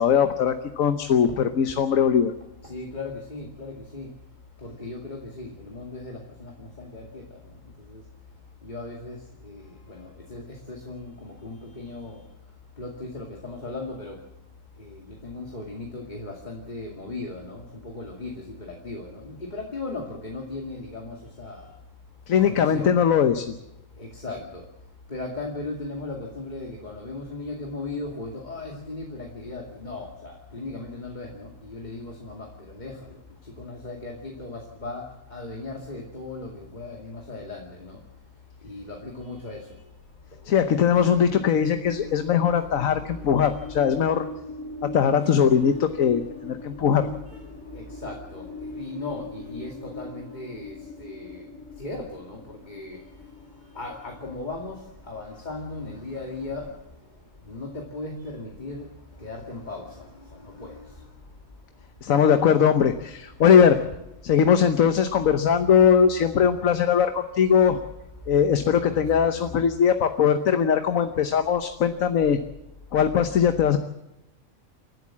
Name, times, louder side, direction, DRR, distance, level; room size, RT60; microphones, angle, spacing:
voice 1, 0.0-2.3 22.3-23.5 40.4-44.3 44.8-47.1 62.0-63.8 64.2-67.8 68.3-72.4 72.9-73.8, left 7 dB, 85° left, 8 dB, 1.4 m, -20 dB
voice 2, 2.6-4.1 4.6-8.0 8.6-12.2 12.8-14.2 14.8-21.7 22.4-23.0 24.0-24.6 25.1-38.0 38.6-39.8 40.4-41.7 42.1-44.1 46.9-53.1 53.6-56.8 57.4-58.9 59.2-61.1 65.7-66.0 68.7-69.6, left 2 dB, 35° left, 0 dB, 2.5 m, -38 dB
sound 1, 40.9-55.6, left 2 dB, 70° left, 3.5 m, -41 dB
28.5 x 12.5 x 7.4 m, 0.94 s
omnidirectional pair, 1.4 m